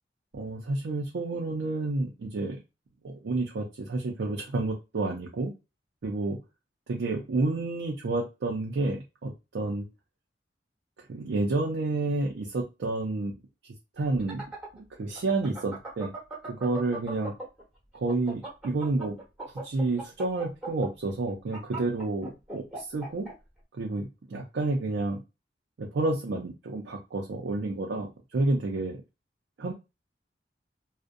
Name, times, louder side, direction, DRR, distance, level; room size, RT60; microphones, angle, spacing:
voice 1, 0.3-2.6 3.0-5.5 6.0-6.4 6.9-9.9 11.1-13.3 14.0-14.4 14.7-16.1 16.4-17.3 17.9-19.2 19.6-23.3 23.8-25.2 25.8-29.0 29.6-29.7, right 2 dB, 70° right, 0 dB, 0.4 m, -30 dB
sound 1, 14.0-17.6 17.9-23.3, right 2 dB, 5° right, 1.0 m, -38 dB
2.4 x 2.1 x 2.5 m, 0.26 s
head